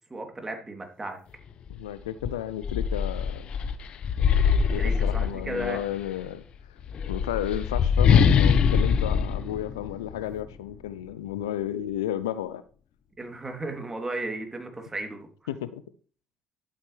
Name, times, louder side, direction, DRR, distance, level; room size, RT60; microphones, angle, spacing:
voice 1, 0.1-1.2 4.7-5.8 13.2-15.3, right 2 dB, 20° right, 3.0 m, -35 dB
voice 2, 1.7-3.5 4.7-6.4 7.1-12.6 15.5-15.8, left 11 dB, 80° left, 0.5 m, -33 dB
sound 1, 1.7-1.8 2.2-5.9 6.8-10.4, left 7 dB, 55° left, 0.8 m, -23 dB
11.5 x 8.8 x 3.3 m
hypercardioid pair, 50°, 2 cm